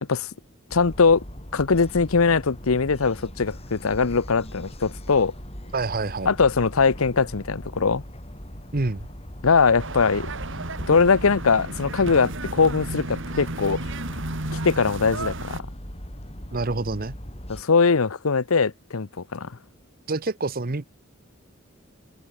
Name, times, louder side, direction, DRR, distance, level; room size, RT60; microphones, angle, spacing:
voice 1, 0.7-1.2 1.5-5.3 6.3-8.0 9.4-10.3 10.9-13.8 14.6-15.6 17.5-19.5, left 4 dB, 75° left, 0.8 m, -21 dB
sound 1, 0.7-17.6, equal, 30° left, 6.9 m, -40 dB
voice 2, 5.7-6.3 8.7-9.1 16.5-17.2 20.1-20.8, right 3 dB, 45° right, 1.0 m, -27 dB
sound 2, 9.8-15.6, right 2 dB, 60° right, 2.8 m, -33 dB
head